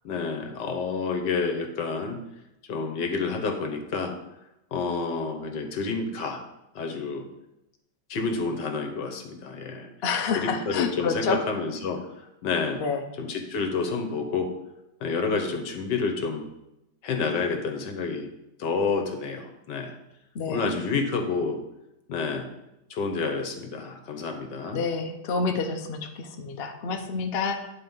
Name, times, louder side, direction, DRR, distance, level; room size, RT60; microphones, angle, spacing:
voice 1, 0.0-2.2 2.7-4.2 4.7-6.4 6.7-7.3 8.1-9.9 10.3-12.8 13.2-14.5 15.0-16.4 17.0-18.3 18.6-20.0 20.5-21.6 22.1-22.5 22.9-24.8, left 4 dB, 70° left, 5 dB, 1.7 m, -29 dB
voice 2, 10.0-11.4 12.8-13.0 20.3-20.7 24.7-27.7, left 4 dB, 50° left, 4 dB, 0.7 m, -28 dB
9.8 x 4.2 x 5.4 m, 0.89 s
omnidirectional pair, 2.0 m